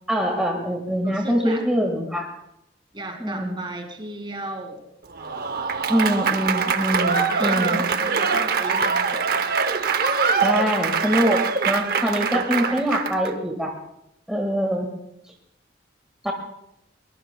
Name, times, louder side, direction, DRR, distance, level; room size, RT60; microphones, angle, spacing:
voice 1, 0.1-2.3 3.2-3.6 5.9-7.8 10.4-13.7 14.3-14.9 16.2-16.3, equal, 5° right, 0 dB, 1.7 m, -24 dB
voice 2, 1.0-1.6 2.9-4.9 7.3-9.4 12.3-12.8, right 1 dB, 25° right, 4 dB, 2.2 m, -35 dB
Applause / Crowd, 5.1-13.3, right 5 dB, 55° right, 0.7 m, -23 dB
22.5 x 20.0 x 2.3 m, 0.79 s
head